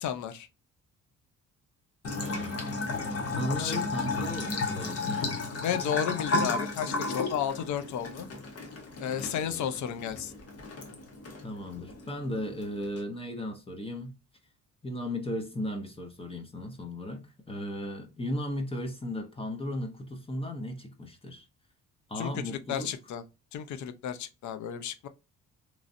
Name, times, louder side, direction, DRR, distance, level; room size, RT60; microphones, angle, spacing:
voice 1, 0.0-0.5 3.5-3.8 5.6-8.3 9.0-10.3 22.2-23.2 23.5-25.1, left 9 dB, 70° left, 0.5 m, -33 dB
Bathtub (filling or washing) / Trickle dribble, 2.0-13.0, left 3 dB, 55° left, 1.0 m, -34 dB
voice 2, 2.2-2.6 3.2-5.4 9.1-9.6 11.4-14.1 14.8-21.5 22.1-22.9, left 1 dB, 20° left, 0.7 m, -36 dB
3.0 x 2.5 x 2.6 m
cardioid pair, 90°, 30 cm